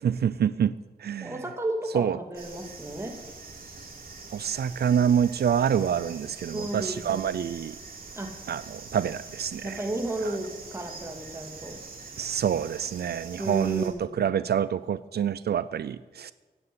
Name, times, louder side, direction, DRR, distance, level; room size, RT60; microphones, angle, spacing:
voice 1, 0.0-1.3 1.9-2.2 4.3-7.8 8.5-9.8 10.2-10.4 12.2-16.3, right 8 dB, 80° right, 16 dB, 0.4 m, -27 dB
voice 2, 1.2-3.2 6.5-7.2 8.2-8.4 9.6-11.8 13.4-14.2, right 1 dB, 15° right, 2 dB, 2.3 m, -33 dB
sound 1, 2.3-13.9, right 4 dB, 60° right, 3.5 m, -44 dB
16.5 x 9.6 x 8.4 m, 1.3 s
wide cardioid pair, 160°, 16 cm